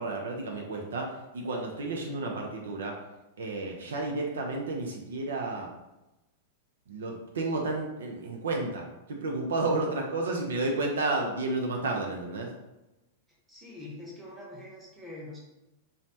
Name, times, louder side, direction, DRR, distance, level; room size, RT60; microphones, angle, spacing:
voice 1, 0.0-3.0 3.4-5.7 6.9-12.5, right 2 dB, 75° right, 1 dB, 0.4 m, -31 dB
voice 2, 13.5-15.4, left 2 dB, 10° right, -4 dB, 0.9 m, -44 dB
3.1 x 2.0 x 2.7 m, 0.99 s
hypercardioid pair, 100°, 0 cm